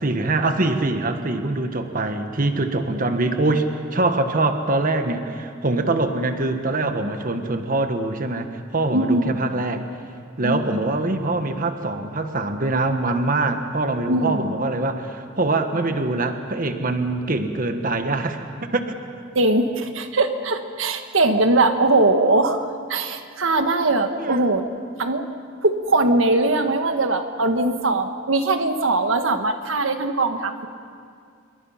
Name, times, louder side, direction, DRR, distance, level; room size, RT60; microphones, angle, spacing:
voice 1, 0.0-3.7 3.9-8.5 8.7-9.8 10.4-19.0 24.2-24.5, right 2 dB, 45° right, 7 dB, 1.4 m, -23 dB
voice 2, 8.9-9.6 10.4-10.7 14.1-14.5 19.3-24.6 25.0-25.2 25.6-30.7, right 2 dB, 90° right, 7 dB, 1.4 m, -21 dB
27.0 x 23.5 x 5.7 m, 2.3 s
head